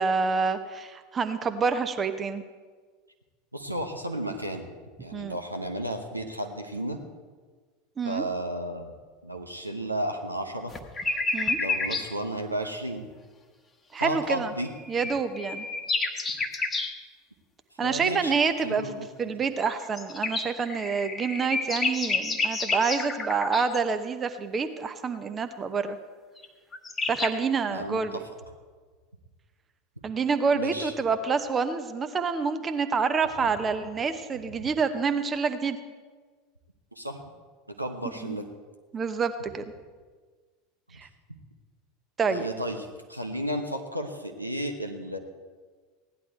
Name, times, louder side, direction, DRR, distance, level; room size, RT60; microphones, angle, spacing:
voice 1, 0.0-2.4 5.1-5.4 8.0-8.2 11.3-11.6 13.9-14.5 14.9-15.6 17.8-26.0 27.1-28.2 30.0-35.8 38.2-38.4 38.9-39.6 41.0-41.1 42.2-42.5, right 5 dB, 25° right, 9 dB, 0.9 m, -27 dB
voice 2, 3.5-4.7 5.0-7.0 8.0-8.9 9.2-10.7 11.6-13.1 14.0-14.7 17.8-18.3 18.6-19.1 27.7-28.2 30.5-30.9 37.0-37.2 37.8-38.4 42.3-45.2, right 1 dB, 90° right, 4 dB, 1.1 m, -33 dB
sound 1, 10.7-12.1 14.6-16.9 19.6-23.8 26.4-26.5 26.7-27.3, left 3 dB, 20° left, 1.2 m, -30 dB
16.5 x 11.0 x 4.5 m, 1.5 s
figure-of-eight pair, 80°, 0 cm